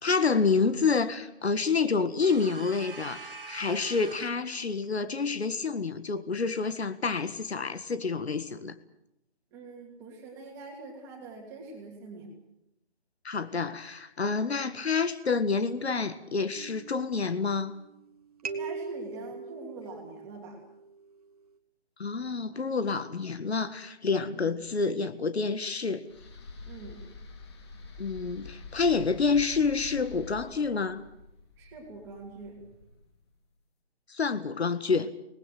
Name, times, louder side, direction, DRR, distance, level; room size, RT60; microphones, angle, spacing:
voice 1, 0.0-8.7 13.2-17.7 22.0-26.1 28.0-31.0 34.1-35.1, left 4 dB, 70° left, 11 dB, 1.8 m, -28 dB
sound 1, 2.2-4.5, right 4 dB, 55° right, 2.6 m, -44 dB
voice 2, 9.5-12.3 18.4-20.6 24.3-24.5 26.7-27.0 31.6-32.5, right 3 dB, 10° right, 1 dB, 2.7 m, -44 dB
sound 2, 16.6-18.0 18.4-21.1, right 4 dB, 35° right, 1.6 m, -41 dB
sound 3, 26.1-33.2, left 3 dB, 25° left, 3.7 m, -47 dB
26.5 x 19.5 x 7.7 m, 0.83 s
hypercardioid pair, 175°, 33 cm